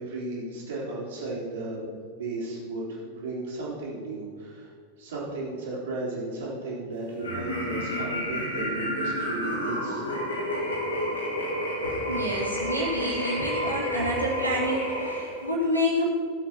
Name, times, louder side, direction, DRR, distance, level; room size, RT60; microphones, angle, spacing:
voice 1, 0.0-1.9 2.2-4.7 5.0-10.0, right 2 dB, 65° right, -10 dB, 3.5 m, -34 dB
sound 1, 7.2-15.6, equal, 70° left, 2.3 m, -30 dB
voice 2, 11.8-16.1, equal, 90° left, -4 dB, 2.7 m, -28 dB
17.5 x 7.8 x 4.6 m, 2.1 s
figure-of-eight pair, 90°, 0 cm